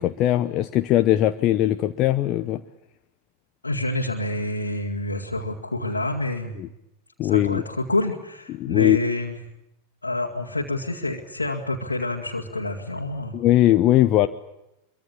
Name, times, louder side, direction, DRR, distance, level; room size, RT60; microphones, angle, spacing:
voice 1, 0.0-2.6 6.6-6.7 7.2-7.6 8.5-9.0 13.3-14.3, left 13 dB, 35° left, 9 dB, 0.9 m, -20 dB
voice 2, 3.6-6.6 7.2-9.4 10.0-13.4, left 2 dB, 80° left, -2 dB, 2.2 m, -27 dB
25.0 x 23.5 x 8.5 m, 0.91 s
figure-of-eight pair, 90°, 0 cm